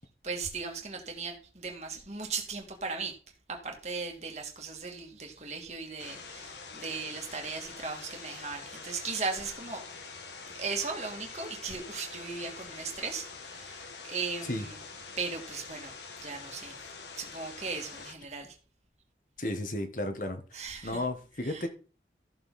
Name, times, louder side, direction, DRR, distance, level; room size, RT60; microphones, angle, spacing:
voice 1, 0.2-3.2 3.5-9.8 10.6-14.8 15.2-16.9 17.2-18.6 20.5-21.0 21.4-21.7, right 4 dB, 40° right, 2.6 m, -37 dB
sound 1, 6.0-18.1, left 4 dB, 85° left, 1.9 m, -45 dB
voice 2, 19.4-21.7, left 1 dB, 45° left, 1.6 m, -34 dB
14.5 x 7.2 x 4.3 m
head